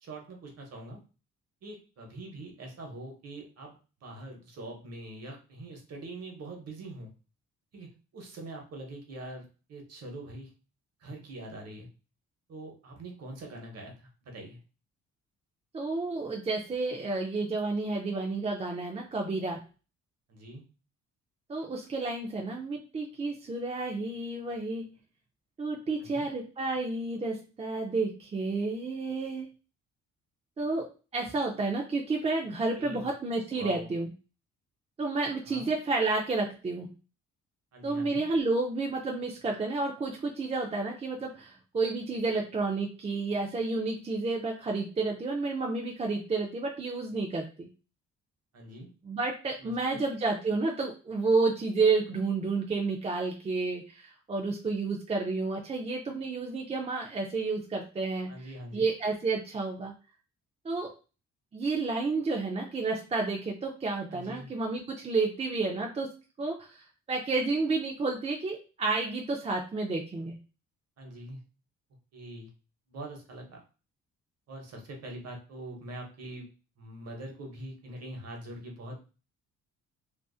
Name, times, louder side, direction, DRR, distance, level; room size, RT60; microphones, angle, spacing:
voice 1, 0.0-1.0 1.6-7.1 7.7-10.5 11.0-11.9 12.5-14.6 20.3-20.6 26.0-26.3 32.8-33.1 33.5-33.9 35.4-35.7 37.7-38.3 48.5-48.9 49.6-50.0 58.3-58.9 64.1-64.5 71.0-71.4 72.1-72.5 72.9-73.6 74.5-76.5 76.8-79.1, right 1 dB, 55° right, 1 dB, 1.0 m, -43 dB
voice 2, 15.7-19.6 21.5-24.9 25.6-29.5 30.6-34.1 35.0-36.9 37.8-47.7 49.0-59.9 60.6-60.9 61.5-70.4, right 3 dB, 20° right, 1 dB, 0.4 m, -31 dB
2.5 x 2.4 x 2.3 m, 0.34 s
cardioid pair, 90°, 30 cm